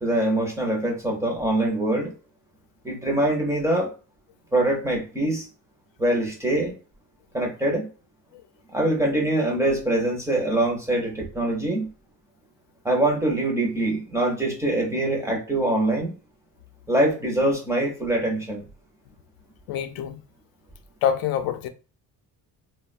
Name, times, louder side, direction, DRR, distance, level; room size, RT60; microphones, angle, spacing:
voice 1, 0.0-2.1 2.8-3.9 4.5-5.5 6.0-6.7 7.3-7.9 8.7-11.9 12.8-16.1 16.9-18.7, right 1 dB, 10° right, 0.5 m, -24 dB
voice 2, 19.7-20.2 21.0-21.7, left 9 dB, 75° left, 0.5 m, -26 dB
3.2 x 2.1 x 2.3 m
cardioid pair, 175°, 35 cm